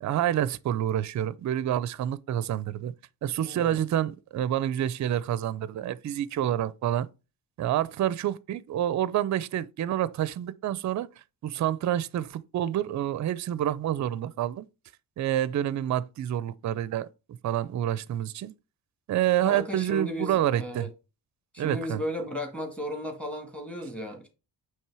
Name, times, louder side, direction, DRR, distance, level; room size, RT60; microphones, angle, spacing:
voice 1, 0.0-2.9 3.2-7.1 7.6-11.1 11.4-14.7 15.2-17.1 17.4-18.5 19.1-20.9 21.6-22.0, right 11 dB, 45° right, 0.4 m, -28 dB
voice 2, 3.4-3.7 19.4-20.9 21.5-24.3, equal, 5° left, 1.7 m, -35 dB
8.7 x 3.3 x 4.7 m
wide cardioid pair, 180°, 42 cm